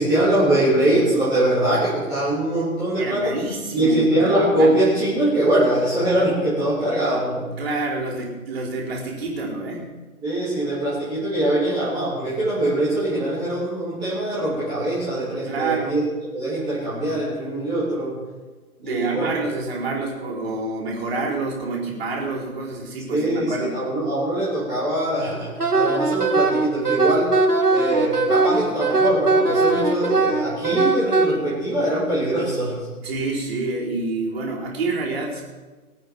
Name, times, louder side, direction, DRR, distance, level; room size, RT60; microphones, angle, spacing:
voice 1, 0.0-3.4 3.7-7.5 10.2-16.0 16.3-18.2 18.8-19.3 23.1-27.4 27.7-32.9, right 1 dB, 10° right, -11 dB, 3.1 m, -22 dB
voice 2, 3.0-4.8 7.6-9.9 15.4-15.9 18.8-23.7 33.0-35.4, right 3 dB, 40° right, -9 dB, 4.5 m, -28 dB
Wind instrument woodwind instrument, 25.6-31.3, right 3 dB, 85° right, 2.7 m, -20 dB
21.0 x 8.8 x 6.1 m, 1.3 s
figure-of-eight pair, 145°, 45 cm